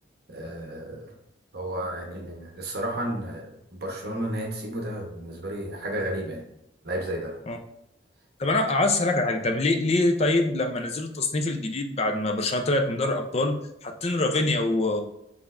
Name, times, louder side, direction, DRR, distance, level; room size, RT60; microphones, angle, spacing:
voice 1, 0.3-1.1 1.5-6.4 6.8-7.4, right 1 dB, 55° right, 0 dB, 1.0 m, -32 dB
voice 2, 8.4-13.5 13.8-15.0, left 2 dB, 35° left, 5 dB, 0.5 m, -24 dB
5.2 x 3.5 x 2.5 m, 0.82 s
head